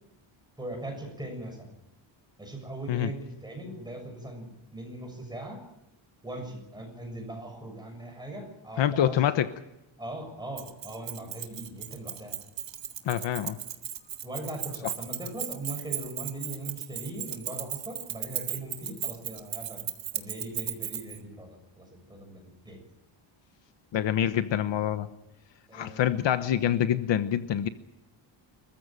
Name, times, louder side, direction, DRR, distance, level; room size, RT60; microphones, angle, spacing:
voice 1, 0.6-1.7 2.4-5.7 6.2-9.3 10.0-12.4 14.2-19.9 20.1-22.9 25.7-26.3, right 1 dB, 10° right, 3 dB, 6.9 m, -40 dB
voice 2, 8.8-9.5 13.0-13.6 23.9-25.1 25.7-27.7, left 10 dB, 65° left, 11 dB, 1.1 m, -26 dB
Keys jangling, 10.6-21.2, right 10 dB, 65° right, 1.9 m, -36 dB
26.5 x 15.0 x 9.0 m, 0.91 s
wide cardioid pair, 175°, 47 cm